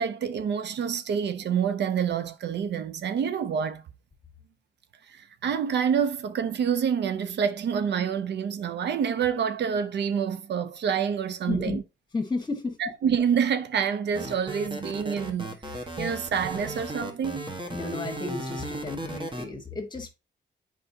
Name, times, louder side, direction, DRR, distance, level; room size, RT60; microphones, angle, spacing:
voice 1, 0.0-3.8 5.1-11.8 12.8-17.4, right 7 dB, 70° right, 0.6 m, -27 dB
voice 2, 11.5-11.8 12.1-12.8 17.7-20.1, left 3 dB, 25° left, 1.6 m, -32 dB
sound 1, 14.1-19.4, right 1 dB, 25° right, 1.5 m, -36 dB
7.7 x 5.0 x 2.8 m
cardioid pair, 85°, 18 cm